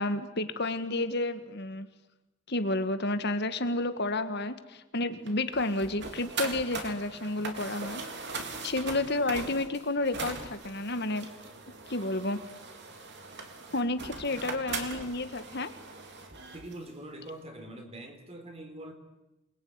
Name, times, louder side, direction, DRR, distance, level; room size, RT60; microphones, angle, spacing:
voice 1, 0.0-1.9 2.5-8.0 8.6-11.3 11.9-12.4 13.7-15.7, left 2 dB, 50° left, 10 dB, 1.7 m, -31 dB
sound 1, 5.3-16.8, right 3 dB, 50° right, 3.7 m, -40 dB
voice 2, 8.3-8.6 14.1-14.2 16.5-18.9, right 1 dB, 30° right, 5 dB, 4.1 m, -44 dB
28.0 x 22.0 x 9.6 m, 1.0 s
head